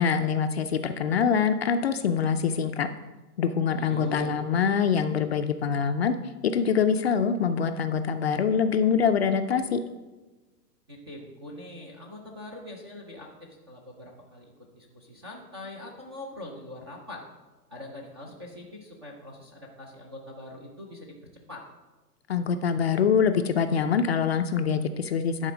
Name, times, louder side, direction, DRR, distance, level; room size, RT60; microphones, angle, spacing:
voice 1, 0.0-2.9 3.4-6.1 6.4-9.8 22.3-25.5, left 6 dB, 45° left, 8 dB, 0.4 m, -24 dB
voice 2, 3.8-4.4 10.9-17.2 17.7-21.1 21.5-21.6, left 1 dB, 20° right, 0 dB, 0.4 m, -42 dB
10.0 x 4.1 x 6.0 m, 1.2 s
hypercardioid pair, 150°, 48 cm